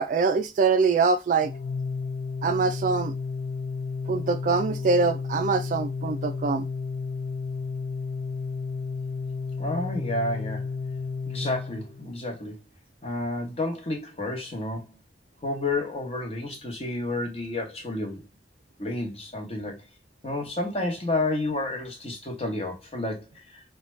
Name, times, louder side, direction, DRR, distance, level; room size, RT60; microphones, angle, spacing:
voice 1, 0.0-1.5 2.4-3.1 4.1-6.7, right 4 dB, 45° right, 0.3 m, -24 dB
Organ, 1.4-12.3, left 4 dB, 90° left, 0.3 m, -32 dB
voice 2, 9.6-10.7 11.3-12.6 13.0-14.9 15.4-18.2 18.8-19.8 20.2-23.6, left 2 dB, 35° left, 1.0 m, -30 dB
3.9 x 2.3 x 3.1 m
head